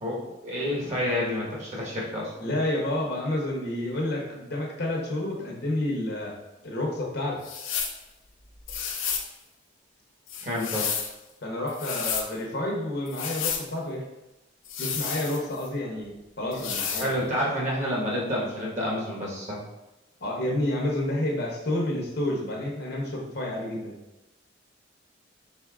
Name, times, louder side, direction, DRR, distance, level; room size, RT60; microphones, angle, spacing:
voice 1, 0.0-2.3 10.4-10.9 17.0-19.6, left 1 dB, 35° right, -4 dB, 1.2 m, -29 dB
voice 2, 2.4-6.3 6.6-7.4 11.4-14.1 14.8-17.2 20.2-24.0, left 1 dB, 55° left, -1 dB, 0.9 m, -29 dB
sound 1, 7.4-8.0 8.7-9.3 10.3-11.1 11.7-12.3 13.1-13.7 14.6-15.7 16.5-17.1, left 7 dB, 80° left, 0.6 m, -31 dB
4.3 x 3.9 x 2.4 m, 1.0 s
head